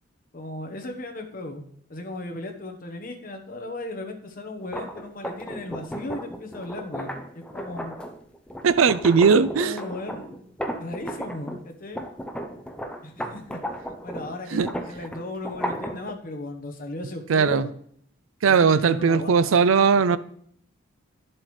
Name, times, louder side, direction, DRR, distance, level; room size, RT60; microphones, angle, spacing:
voice 1, 0.3-1.6 1.9-7.2 7.5-7.9 9.2-10.4 10.8-12.1 13.0-13.6 14.0-17.7 18.4-20.2, left 2 dB, 40° left, 1.1 m, -36 dB
sound 1, 4.6-11.6 11.9-16.1, equal, 5° left, 0.6 m, -34 dB
voice 2, 8.6-9.8 14.5-14.7 17.3-17.7 18.4-20.2, right 5 dB, 75° right, 0.4 m, -19 dB
11.5 x 7.5 x 3.2 m
head